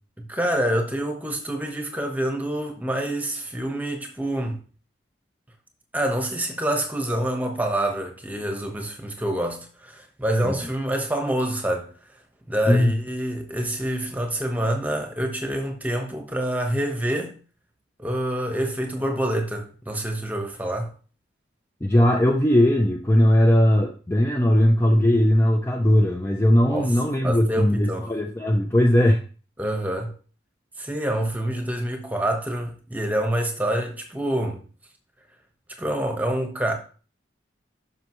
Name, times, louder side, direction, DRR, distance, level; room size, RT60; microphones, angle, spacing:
voice 1, 0.2-4.6 5.9-11.9 12.5-17.4 18.0-20.9 26.7-26.9 27.2-28.1 29.6-30.1 30.8-34.6 35.8-36.7, right 1 dB, 10° right, 1.2 m, -26 dB
voice 2, 21.8-29.2, left 1 dB, 15° left, 0.6 m, -19 dB
11.5 x 5.5 x 3.1 m
head